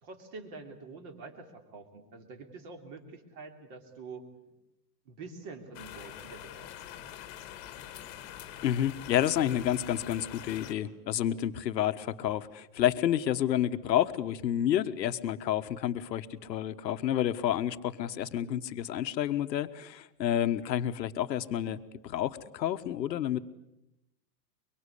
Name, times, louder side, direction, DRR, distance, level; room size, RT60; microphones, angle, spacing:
voice 1, 0.0-4.3 5.1-6.7, right 3 dB, 30° right, 6 dB, 3.0 m, -46 dB
sound 1, 5.7-10.7, left 11 dB, 25° left, 1.8 m, -45 dB
voice 2, 8.6-23.4, left 11 dB, 85° left, 11 dB, 1.5 m, -30 dB
24.0 x 24.0 x 8.4 m, 0.87 s
supercardioid pair, 170°, 50 cm